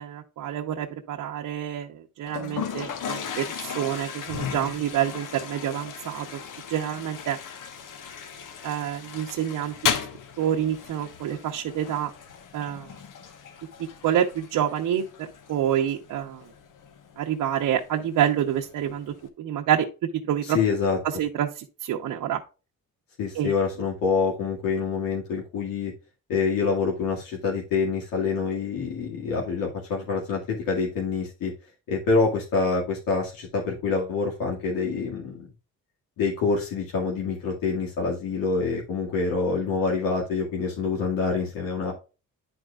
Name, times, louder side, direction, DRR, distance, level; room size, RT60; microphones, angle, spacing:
voice 1, 0.0-6.4 6.7-7.4 8.6-9.9 10.4-12.1 12.5-12.9 14.0-16.4 17.2-19.9 20.3-20.6 21.2-22.4 23.3-23.5, right 10 dB, 70° right, 0 dB, 0.9 m, -27 dB
Toilet flush, 2.3-19.3, left 7 dB, 65° left, 1.2 m, -36 dB
voice 2, 20.4-21.0 23.2-25.9 26.3-31.5 31.9-35.5 36.2-41.9, left 4 dB, 85° left, -2 dB, 2.1 m, -26 dB
11.0 x 4.5 x 2.4 m, 0.32 s
cardioid pair, 140°, 33 cm